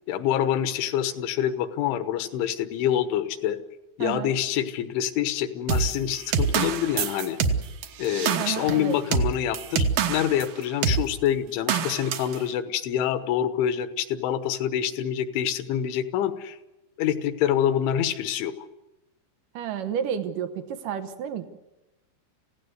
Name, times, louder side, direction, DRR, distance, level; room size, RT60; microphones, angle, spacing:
voice 1, 0.1-3.6 4.0-7.4 8.0-16.6 17.0-18.7, left 10 dB, 75° left, 11 dB, 3.5 m, -26 dB
voice 2, 4.0-4.3 8.4-9.0 19.5-21.5, right 8 dB, 90° right, 8 dB, 1.8 m, -31 dB
sound 1, 5.7-10.5 10.8-11.0 11.7-12.4, right 6 dB, 70° right, 2.3 m, -25 dB
28.0 x 16.5 x 8.0 m, 1.0 s
omnidirectional pair, 5.6 m